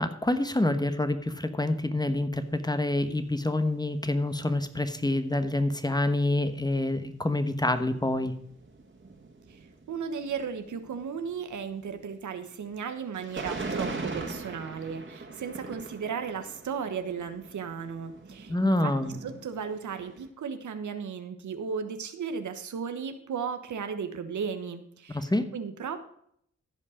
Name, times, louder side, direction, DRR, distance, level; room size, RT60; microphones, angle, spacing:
voice 1, 0.0-8.3 18.5-19.1 25.1-25.4, left 1 dB, 15° left, 9 dB, 1.2 m, -27 dB
sound 1, 2.4-2.6 3.2-3.3 3.8-3.9 4.2-4.3 6.8-20.3, right 3 dB, 40° right, 2.2 m, -42 dB
voice 2, 9.9-18.9 19.2-26.0, right 6 dB, 80° right, 9 dB, 1.1 m, -35 dB
15.0 x 5.4 x 5.0 m, 0.69 s
cardioid pair, 50°, 29 cm